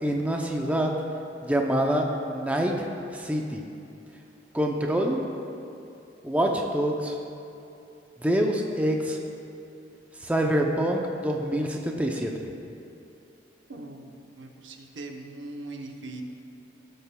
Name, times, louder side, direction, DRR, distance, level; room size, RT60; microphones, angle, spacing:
voice 1, 0.0-0.9 1.4-2.7 3.1-3.6 4.5-5.2 6.2-7.2 8.2-9.2 10.2-12.3, right 1 dB, 10° right, 1 dB, 0.5 m, -26 dB
voice 2, 13.7-16.2, right 2 dB, 80° right, 3 dB, 0.8 m, -40 dB
16.5 x 6.6 x 2.2 m, 2.7 s
head